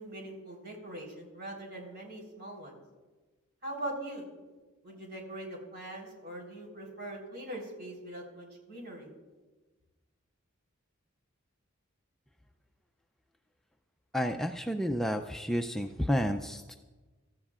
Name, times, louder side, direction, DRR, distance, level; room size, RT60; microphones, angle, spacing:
voice 1, 0.0-2.8 3.6-4.3 4.8-9.1, right 1 dB, 50° right, -1 dB, 4.0 m, -42 dB
voice 2, 14.1-16.8, equal, ahead, 4 dB, 0.4 m, -31 dB
24.5 x 14.0 x 2.5 m, 1.3 s
head